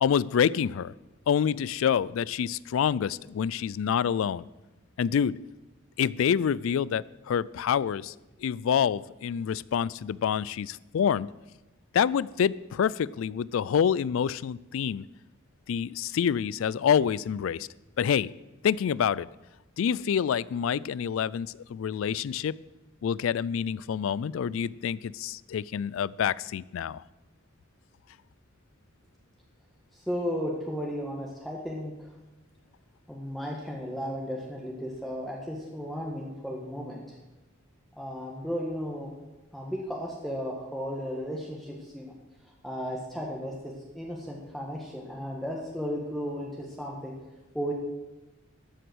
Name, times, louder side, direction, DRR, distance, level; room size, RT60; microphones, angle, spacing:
voice 1, 0.0-0.9 1.3-4.4 5.0-5.4 6.0-8.1 8.4-11.3 11.9-15.0 15.7-17.7 18.0-18.3 18.6-19.3 19.8-22.6 23.0-27.0, left 8 dB, 75° left, 21 dB, 0.3 m, -27 dB
voice 2, 29.9-32.1 33.1-37.0 38.0-39.1 39.5-42.1 42.6-47.1 47.5-47.7, equal, ahead, -2 dB, 1.4 m, -34 dB
13.0 x 7.9 x 6.2 m, 1.1 s
head